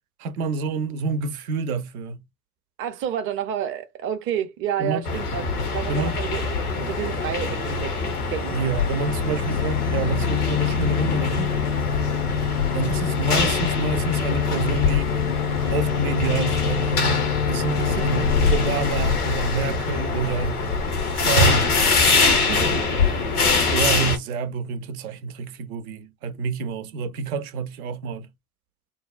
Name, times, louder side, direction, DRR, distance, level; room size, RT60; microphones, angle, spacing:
voice 1, 0.2-2.2 4.8-5.0 5.9-6.1 8.5-11.5 12.7-15.2 15.7-20.6 21.1-21.7 23.7-28.3, right 4 dB, 75° right, 0.6 m, -28 dB
voice 2, 2.8-5.4 5.7-8.0 8.3-8.5 17.9-18.2 22.4-22.8, right 10 dB, 30° right, 0.5 m, -30 dB
sound 1, 5.1-24.2, left 3 dB, 90° left, 0.8 m, -24 dB
sound 2, 9.1-20.6, left 8 dB, 70° left, 0.5 m, -27 dB
2.7 x 2.0 x 2.3 m
figure-of-eight pair, 70°, 44 cm